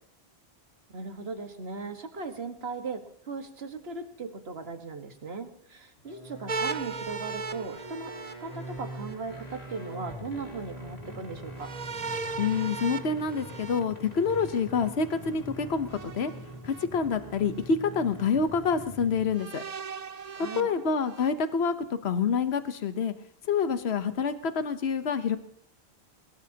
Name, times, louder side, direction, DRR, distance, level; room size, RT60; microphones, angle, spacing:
voice 1, 0.9-11.7 20.3-20.7, right 4 dB, 70° right, 6 dB, 1.8 m, -38 dB
sound 1, 6.0-19.4, equal, 40° left, 3.4 m, -43 dB
sound 2, 6.5-9.1 11.6-14.6 15.9-16.8 17.6-17.7 19.3-21.3, right 4 dB, 40° right, 0.8 m, -38 dB
voice 2, 12.4-16.3 16.6-19.6 20.5-23.1 23.5-25.4, left 5 dB, 75° left, 10 dB, 1.2 m, -27 dB
21.5 x 20.5 x 2.9 m, 0.70 s
omnidirectional pair, 1.1 m